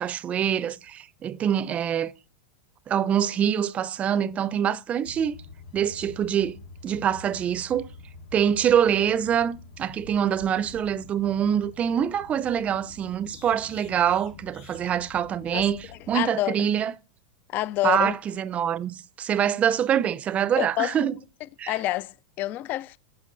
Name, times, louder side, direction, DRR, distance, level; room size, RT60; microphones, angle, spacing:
voice 1, 0.0-2.1 2.9-5.3 5.7-6.6 6.8-7.9 8.3-16.9 17.8-21.2 21.6-21.7, right 9 dB, 30° right, 0.6 m, -25 dB
sound 1, 5.0-16.3, left 4 dB, 65° left, 1.3 m, -47 dB
voice 2, 16.1-16.6 17.5-18.1 20.6-21.0 21.7-23.0, left 16 dB, 40° left, 0.4 m, -27 dB
15.0 x 6.2 x 2.6 m
hypercardioid pair, 100°, 5 cm